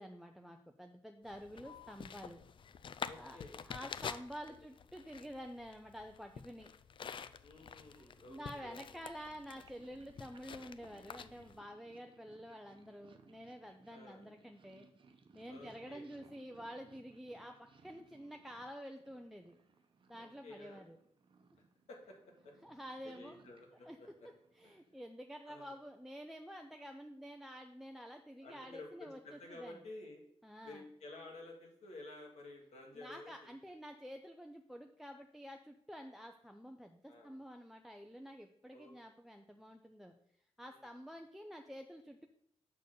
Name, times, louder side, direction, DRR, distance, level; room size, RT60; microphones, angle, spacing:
voice 1, 0.0-2.4 3.1-3.4 3.7-6.7 8.0-14.9 15.3-19.6 20.1-21.0 22.6-23.4 23.8-24.0 24.5-29.8 30.4-30.9 32.9-40.1 40.6-42.3, equal, ahead, 5 dB, 0.5 m, -49 dB
sound 1, 1.2-11.6, left 7 dB, 50° left, 0.4 m, -48 dB
voice 2, 3.0-3.6 4.5-4.7 7.4-8.8 11.1-11.2 13.9-14.3 15.5-16.1 18.1-18.4 20.1-20.8 21.9-22.5 23.0-24.3 24.6-24.7 25.5-25.8 28.4-30.2 30.6-33.5 37.1-37.4 38.7-38.9 40.6-40.9, left 2 dB, 90° left, 0 dB, 1.9 m, -53 dB
Purr, 7.5-25.1, right 4 dB, 50° right, 0.8 m, -66 dB
6.9 x 4.1 x 6.6 m, 0.70 s
cardioid pair, 100°, 11 cm